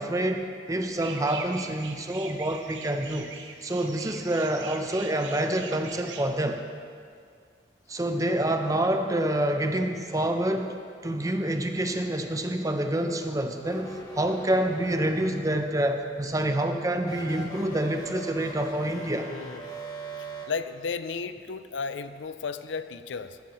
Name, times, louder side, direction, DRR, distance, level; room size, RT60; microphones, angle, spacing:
voice 1, 0.0-3.3 3.6-6.6 7.9-10.7 11.0-19.3, right 1 dB, 20° right, 5 dB, 0.7 m, -27 dB
sound 1, 0.9-6.2, right 5 dB, 85° right, 1.0 m, -42 dB
sound 2, 13.6-15.8 17.0-20.4, right 1 dB, 20° left, 1.4 m, -41 dB
voice 2, 19.3-19.8 20.5-23.4, left 5 dB, 85° left, 12 dB, 0.5 m, -34 dB
13.5 x 12.5 x 3.1 m, 2.1 s
head